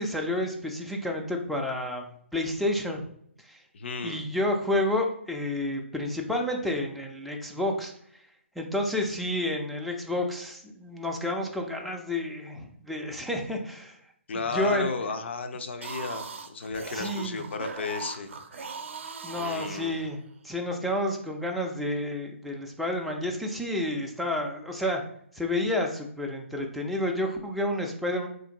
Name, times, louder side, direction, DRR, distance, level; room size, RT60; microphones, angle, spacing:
voice 1, 0.0-3.0 3.4-3.6 4.0-7.9 8.6-14.0 14.3-14.9 16.9-17.5 19.2-20.2 20.4-25.0 25.3-28.3, left 1 dB, ahead, 0 dB, 0.3 m, -30 dB
voice 2, 3.7-4.2 14.3-18.3 19.3-20.0, left 4 dB, 55° left, 8 dB, 0.5 m, -33 dB
sound 1, 15.7-20.4, right 5 dB, 65° right, 0.5 m, -40 dB
3.6 x 2.5 x 2.8 m, 0.66 s
figure-of-eight pair, 140°, 7 cm